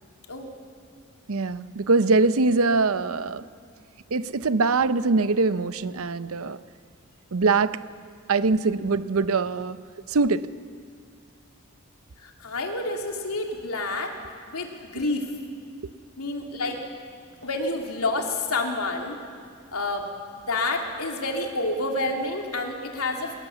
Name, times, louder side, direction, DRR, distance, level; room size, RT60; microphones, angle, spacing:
voice 1, 1.3-3.4 4.1-6.6 7.3-7.8 8.3-9.8 10.1-10.5, right 3 dB, 75° right, 0.7 m, -23 dB
voice 2, 12.2-14.1 14.5-15.3 16.2-16.8 17.4-19.2 19.7-20.1 20.5-23.4, left 2 dB, 85° left, 3.0 m, -28 dB
22.5 x 19.5 x 7.2 m
head